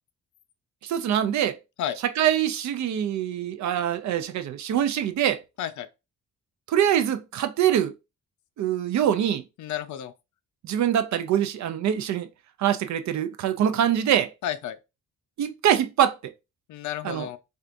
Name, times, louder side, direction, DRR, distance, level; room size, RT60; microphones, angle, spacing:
voice 1, 0.8-1.6 2.2-5.4 6.7-7.9 8.6-9.4 10.6-12.3 12.6-14.3 15.4-16.2 17.0-17.3, right 10 dB, 60° right, 0.5 m, -24 dB
voice 2, 9.6-10.1 14.4-14.8 16.7-17.4, left 10 dB, 65° left, 0.5 m, -31 dB
4.4 x 2.5 x 2.5 m
cardioid pair, 155°, 32 cm